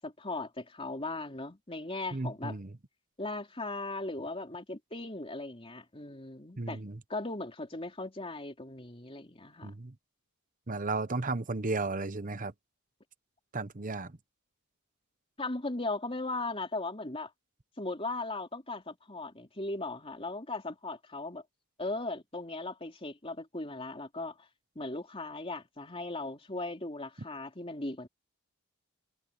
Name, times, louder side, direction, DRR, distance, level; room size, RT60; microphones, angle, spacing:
voice 1, 0.0-2.6 3.2-6.8 7.1-9.7 15.4-17.3 17.8-21.4 21.8-24.4 24.8-28.1, left 2 dB, 25° left, 3.5 m, -38 dB
voice 2, 2.1-2.7 6.6-7.0 9.6-9.9 10.7-12.5 13.5-14.2, right 3 dB, 35° right, 1.0 m, -34 dB
head